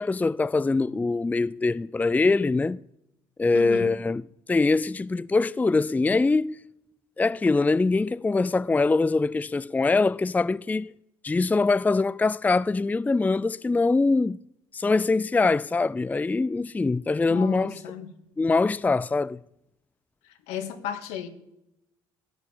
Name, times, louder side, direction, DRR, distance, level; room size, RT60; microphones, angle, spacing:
voice 1, 0.0-2.8 3.4-4.2 4.5-6.6 7.2-10.9 11.2-14.4 14.7-17.8 18.4-19.4, left 3 dB, 15° left, 0.4 m, -23 dB
voice 2, 3.5-4.0 17.3-18.2 20.2-21.3, left 9 dB, 80° left, 1.8 m, -35 dB
15.5 x 6.2 x 9.9 m
hypercardioid pair, 60°, 11 cm